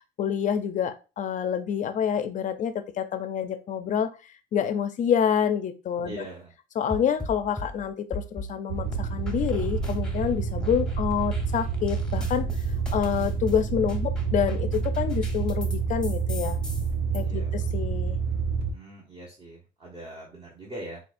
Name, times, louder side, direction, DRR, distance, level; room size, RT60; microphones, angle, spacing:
voice 1, 0.2-4.1 4.5-6.3 6.8-12.5 12.9-16.6 17.1-18.2, left 8 dB, 50° left, 9 dB, 0.5 m, -27 dB
voice 2, 6.0-6.5 17.2-17.6 18.7-21.0, right 1 dB, 30° right, -4 dB, 1.2 m, -42 dB
sound 1, 6.9-8.5 8.9-10.3 10.6-15.8 16.0-17.2, left 1 dB, 5° left, 0.9 m, -40 dB
sound 2, 8.7-18.7, right 5 dB, 75° right, 0.6 m, -28 dB
5.6 x 2.4 x 2.6 m, 0.32 s
cardioid pair, 110°, 17 cm